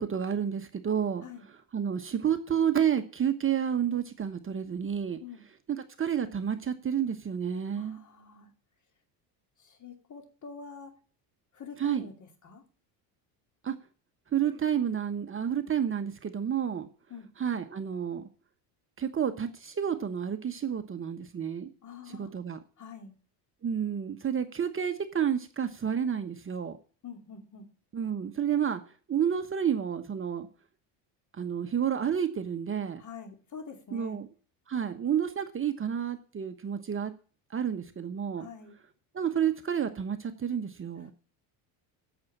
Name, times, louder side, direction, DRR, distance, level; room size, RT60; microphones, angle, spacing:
voice 1, 0.0-1.2 1.7-5.2 5.8-8.0 11.8-12.1 13.6-13.7 14.3-16.9 17.4-18.2 19.0-21.7 22.2-22.6 23.6-26.8 27.9-28.8 29.1-30.5 31.4-33.0 33.9-34.3 34.7-37.1 37.5-38.5 39.1-41.1, right 8 dB, 25° right, 8 dB, 1.1 m, -30 dB
voice 2, 7.7-8.5 9.6-10.9 11.5-12.6 17.1-17.3 21.8-22.4 22.8-23.1 27.0-27.7 33.0-34.2 38.4-38.8, left 5 dB, 40° left, 5 dB, 2.6 m, -46 dB
8.7 x 7.1 x 8.5 m, 0.39 s
supercardioid pair, 100°, 46 cm